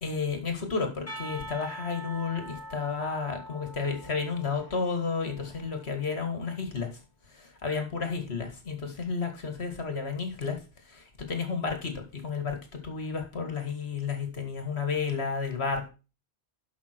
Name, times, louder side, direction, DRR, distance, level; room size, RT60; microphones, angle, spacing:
voice 1, 0.0-7.0 7.3-15.9, left 5 dB, 70° left, 5 dB, 2.2 m, -32 dB
Percussion / Church bell, 1.1-6.1, equal, 15° left, 3.0 m, -44 dB
11.5 x 5.6 x 4.5 m, 0.32 s
omnidirectional pair, 1.1 m